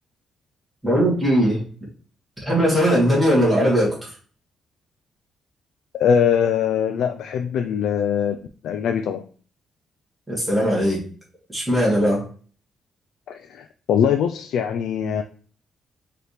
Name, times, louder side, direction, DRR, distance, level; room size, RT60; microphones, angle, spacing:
voice 1, 0.8-1.6 2.5-4.1 10.3-11.0 11.5-12.2, equal, ahead, -6 dB, 1.9 m, -19 dB
voice 2, 6.0-8.4 8.6-9.2 13.3-15.2, left 8 dB, 75° left, 6 dB, 0.3 m, -22 dB
4.8 x 2.9 x 3.2 m, 0.42 s
cardioid pair, 175°, 0 cm